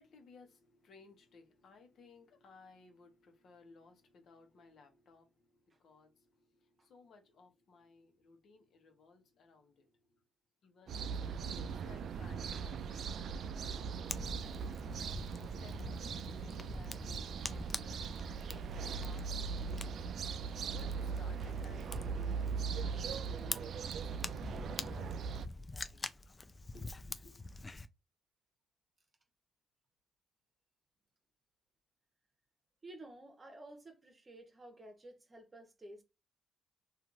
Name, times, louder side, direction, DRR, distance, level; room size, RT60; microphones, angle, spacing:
voice 1, 0.0-10.2 10.6-14.9 15.6-20.1 20.4-26.1 26.7-27.4, left 4 dB, 65° left, 0.9 m, -60 dB
sound 1, 10.9-25.5, right 6 dB, 65° right, 0.3 m, -40 dB
Fire, 14.1-27.9, left 2 dB, 25° left, 0.4 m, -46 dB
voice 2, 32.8-36.0, right 1 dB, 25° right, 0.9 m, -53 dB
2.9 x 2.4 x 2.5 m
cardioid pair, 90°, 0 cm